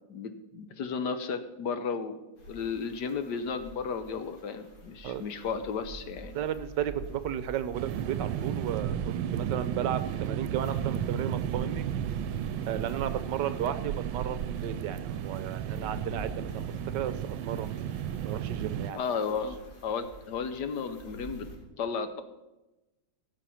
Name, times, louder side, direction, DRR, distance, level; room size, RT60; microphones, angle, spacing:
voice 1, 0.1-2.2 2.5-6.4 18.9-21.5 21.8-22.2, left 5 dB, 65° left, 10 dB, 1.3 m, -34 dB
sound 1, 2.4-21.6, right 1 dB, 85° left, 3.6 m, -47 dB
voice 2, 6.3-11.9 12.7-17.8 18.2-19.0, right 10 dB, 70° right, 12 dB, 1.3 m, -34 dB
sound 2, 7.7-18.9, right 10 dB, 90° right, 1.4 m, -33 dB
16.0 x 7.3 x 5.8 m, 1.0 s
omnidirectional pair, 2.1 m